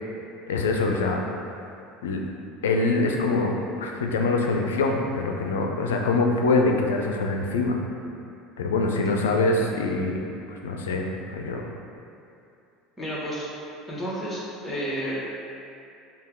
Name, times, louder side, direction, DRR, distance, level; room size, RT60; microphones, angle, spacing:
voice 1, 0.5-1.2 2.0-2.2 2.6-7.8 8.6-10.2 10.5-11.6, left 3 dB, 80° left, 2 dB, 0.4 m, -24 dB
voice 2, 13.0-13.5 13.9-15.2, equal, 10° left, -7 dB, 1.4 m, -31 dB
5.4 x 2.3 x 3.6 m, 2.6 s
hypercardioid pair, 75°, 0 cm